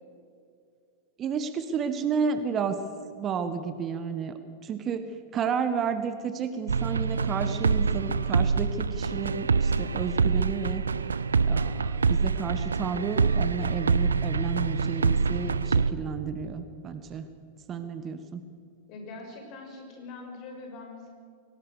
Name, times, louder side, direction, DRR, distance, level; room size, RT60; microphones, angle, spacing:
voice 1, 1.2-2.8 3.2-10.8 11.5-17.3 17.7-18.4, right 6 dB, 30° right, 10 dB, 1.3 m, -32 dB
sound 1, 6.7-15.9, right 5 dB, 75° right, 0.6 m, -25 dB
voice 2, 18.9-21.1, left 3 dB, 40° left, 2 dB, 6.3 m, -43 dB
23.0 x 19.0 x 6.7 m, 2.3 s
figure-of-eight pair, 90°, 0 cm